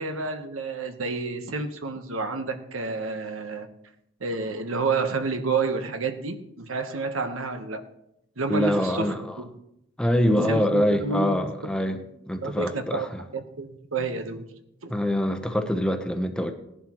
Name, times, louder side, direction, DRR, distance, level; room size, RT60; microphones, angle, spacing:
voice 1, 0.0-3.7 4.2-7.8 8.4-9.5 10.4-11.4 11.9-12.0 12.4-13.1 13.3-14.4 14.8-14.9, right 4 dB, 85° right, 7 dB, 1.1 m, -29 dB
voice 2, 8.5-9.4 10.0-12.0 12.3-13.2 14.9-16.5, equal, 5° left, 5 dB, 0.8 m, -24 dB
18.5 x 11.0 x 3.0 m, 0.80 s
head